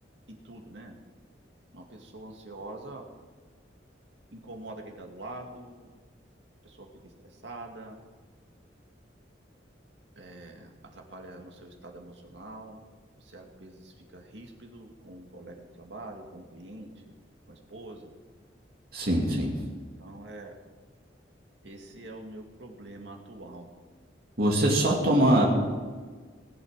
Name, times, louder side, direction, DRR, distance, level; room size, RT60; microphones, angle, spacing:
voice 1, 0.3-1.0 1.7-3.0 4.3-5.9 6.6-8.0 10.1-12.8 13.1-17.1 17.5-18.1 19.8-20.5 21.6-23.7, right 2 dB, 75° right, 1 dB, 2.3 m, -45 dB
voice 2, 18.9-19.6 24.4-25.4, right 1 dB, 55° right, -3 dB, 2.6 m, -23 dB
19.0 x 8.3 x 6.5 m, 1.5 s
head